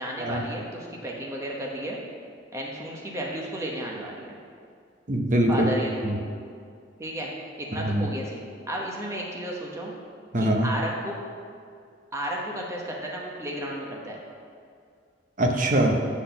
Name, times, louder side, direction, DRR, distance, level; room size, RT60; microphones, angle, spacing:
voice 1, 0.0-2.0 2.5-4.4 5.5-6.2 7.0-7.3 7.6-9.9 10.4-11.2 12.1-14.2, equal, 15° right, -2 dB, 0.9 m, -33 dB
voice 2, 5.1-5.7 6.0-6.2 7.7-8.1 10.3-10.7 15.4-15.9, right 1 dB, 45° right, 2 dB, 0.8 m, -23 dB
8.3 x 4.0 x 6.8 m, 2.3 s
head